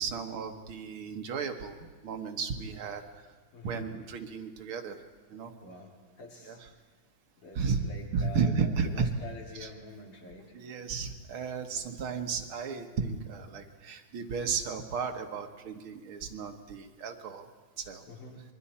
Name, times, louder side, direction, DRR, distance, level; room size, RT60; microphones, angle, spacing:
voice 1, 0.0-1.8 2.0-3.0 3.6-5.0 5.3-5.5 6.5-6.7 7.6-7.8 8.1-9.1 9.5-9.7 10.5-17.5 17.8-18.0, right 5 dB, 75° right, 5 dB, 2.2 m, -33 dB
voice 2, 3.5-3.9 5.6-6.6 7.4-10.6 18.1-18.4, left 3 dB, 90° left, -1 dB, 3.9 m, -47 dB
26.5 x 23.0 x 4.3 m, 1.4 s
omnidirectional pair, 2.3 m